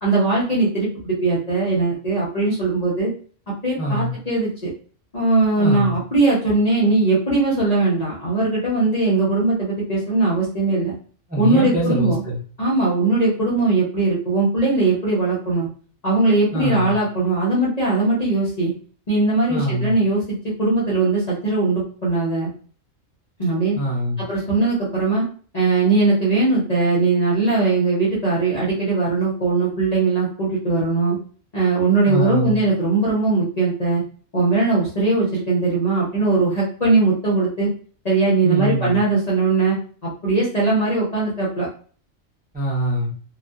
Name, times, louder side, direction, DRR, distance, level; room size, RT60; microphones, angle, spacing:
voice 1, 0.0-3.1 3.6-4.7 5.1-10.9 11.4-12.2 12.6-15.7 16.0-18.7 19.1-22.5 23.4-23.8 24.3-25.3 25.5-31.2 31.5-34.0 34.3-37.7 38.0-41.7, right 3 dB, 40° left, -6 dB, 0.7 m, -20 dB
voice 2, 3.8-4.1 5.6-5.9 11.3-12.4 16.5-16.9 19.5-19.9 23.7-24.2 32.1-32.6 38.4-39.0 42.5-43.1, right 1 dB, 10° right, -5 dB, 0.5 m, -23 dB
2.6 x 2.4 x 2.3 m, 0.42 s
omnidirectional pair, 1.4 m